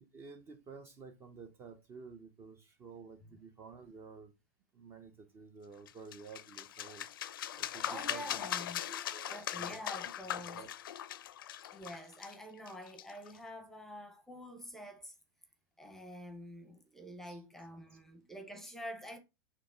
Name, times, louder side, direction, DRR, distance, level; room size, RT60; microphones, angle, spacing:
voice 1, 0.0-4.3 4.7-7.1 7.5-8.4 8.9-9.8 10.5-10.7 17.2-17.4 18.6-18.7, right 5 dB, 20° right, 0.7 m, -52 dB
sound 1, 5.9-13.4, left 11 dB, 80° left, 0.5 m, -40 dB
voice 2, 7.8-8.8 9.3-10.6 11.7-15.1 15.8-19.2, equal, 5° left, 0.9 m, -47 dB
6.8 x 3.0 x 4.9 m
supercardioid pair, 160°, 11 cm